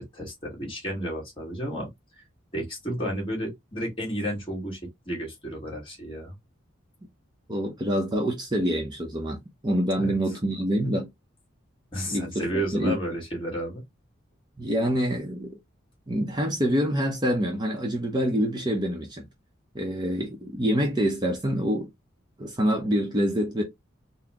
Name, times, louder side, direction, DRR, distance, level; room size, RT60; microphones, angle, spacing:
voice 1, 0.0-1.9 2.5-4.8 5.0-6.3 9.9-10.1 11.9-13.8, right 1 dB, 25° left, 1.6 m, -32 dB
voice 2, 7.5-9.4 9.6-11.1 12.1-13.0 14.6-15.5 16.1-19.3 19.7-21.9 22.4-23.6, equal, 20° right, 0.6 m, -26 dB
4.0 x 2.1 x 2.8 m
head